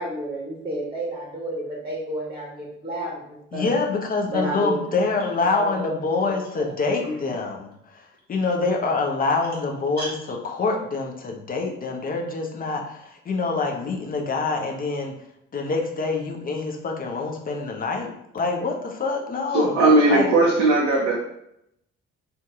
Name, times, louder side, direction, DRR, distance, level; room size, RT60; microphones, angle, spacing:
voice 1, 0.0-3.7 4.3-4.8 5.5-5.8 7.0-7.1 10.0-10.1, right 1 dB, 15° right, -4 dB, 0.9 m, -30 dB
voice 2, 3.5-15.1 15.5-19.7 20.1-20.3, left 3 dB, 25° left, 1 dB, 0.6 m, -26 dB
voice 3, 19.5-21.1, right 2 dB, 70° right, -4 dB, 0.6 m, -18 dB
2.7 x 2.3 x 3.6 m, 0.78 s
figure-of-eight pair, 45°, 36 cm